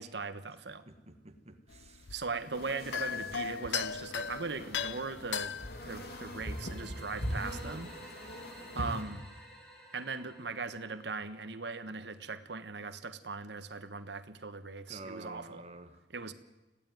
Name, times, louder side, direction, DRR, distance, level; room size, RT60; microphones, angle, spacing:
voice 1, 0.0-0.9 2.1-7.9 8.7-9.3 9.9-15.6 16.1-16.3, right 4 dB, 75° right, 10 dB, 1.3 m, -39 dB
voice 2, 0.9-2.1 14.9-16.0, right 2 dB, 35° right, 9 dB, 1.5 m, -49 dB
sound 1, 1.7-6.8, left 7 dB, 85° left, 0.8 m, -38 dB
sound 2, 2.5-9.0, equal, 60° left, 3.3 m, -42 dB
sound 3, 5.6-11.5, equal, 5° left, 4.6 m, -54 dB
22.0 x 15.5 x 9.4 m, 1.1 s
head